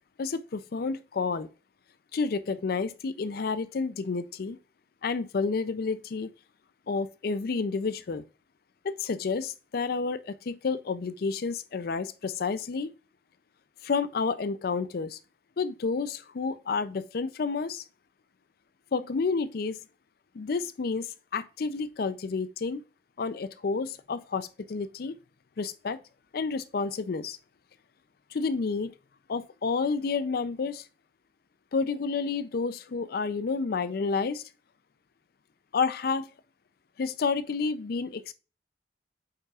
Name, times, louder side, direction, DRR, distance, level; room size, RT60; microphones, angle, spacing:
voice 1, 0.2-1.5 2.1-4.6 5.0-6.3 6.9-8.2 8.8-12.9 13.8-15.2 15.6-17.8 18.9-19.8 20.3-22.8 23.2-25.1 25.6-26.0 26.3-27.4 28.3-28.9 29.3-30.8 31.7-34.4 35.7-36.3 37.0-38.3, left 4 dB, 60° left, 0.4 m, -30 dB
8.7 x 5.5 x 2.4 m
head